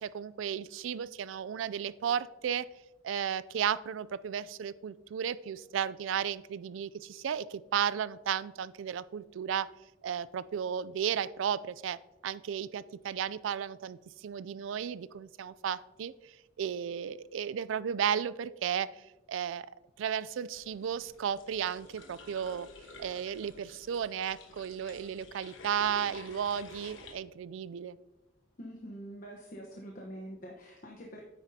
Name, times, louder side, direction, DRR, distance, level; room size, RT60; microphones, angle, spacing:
voice 1, 0.0-2.7 3.0-9.7 10.0-12.0 12.2-16.1 16.6-18.9 19.3-19.7 20.0-22.7 23.0-28.0, right 8 dB, 85° right, 18 dB, 0.3 m, -34 dB
sound 1, 20.5-27.1, left 2 dB, 85° left, 1.2 m, -51 dB
voice 2, 28.6-31.2, equal, 45° left, -1 dB, 1.0 m, -45 dB
9.3 x 9.0 x 2.8 m, 1.0 s
head